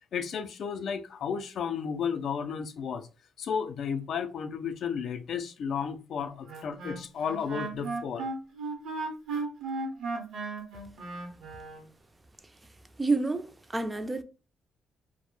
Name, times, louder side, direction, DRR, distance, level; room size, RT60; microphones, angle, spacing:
voice 1, 0.1-3.1 3.4-8.3, left 7 dB, 65° left, 0.3 m, -33 dB
Wind instrument woodwind instrument, 6.5-11.8, right 3 dB, 80° right, 0.7 m, -36 dB
voice 2, 13.0-14.2, right 3 dB, 20° right, 0.3 m, -29 dB
2.1 x 2.0 x 3.0 m
cardioid pair, 90°, 0 cm